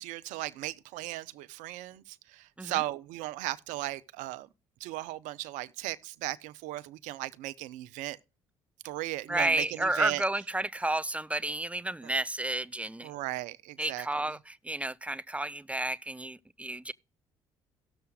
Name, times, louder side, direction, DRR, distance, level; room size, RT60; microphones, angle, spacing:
voice 1, 0.0-4.5 4.8-8.2 8.8-10.2 12.0-12.1 13.0-14.4, right 16 dB, 75° right, 0.6 m, -37 dB
voice 2, 9.3-13.1 13.8-16.9, right 2 dB, 10° right, 0.4 m, -31 dB
17.5 x 6.8 x 2.3 m
hypercardioid pair, 55°, 13 cm